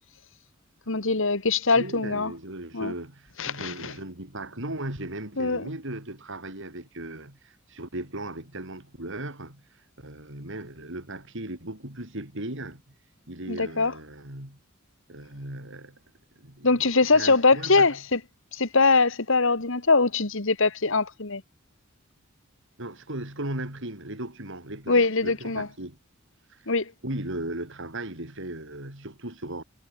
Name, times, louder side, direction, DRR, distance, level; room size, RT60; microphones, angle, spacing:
voice 1, 0.9-2.3 2.7-2.9 3.4-3.9 5.4-5.7 13.5-13.9 16.6-18.2 18.5-21.4 24.9-25.7 26.7-26.9, left 3 dB, 65° left, 2.2 m, -22 dB
voice 2, 1.7-12.8 13.3-14.6 15.1-16.0 16.4-17.9 22.8-26.0 26.5-26.7 27.0-29.6, right 1 dB, 65° right, 5.9 m, -37 dB
head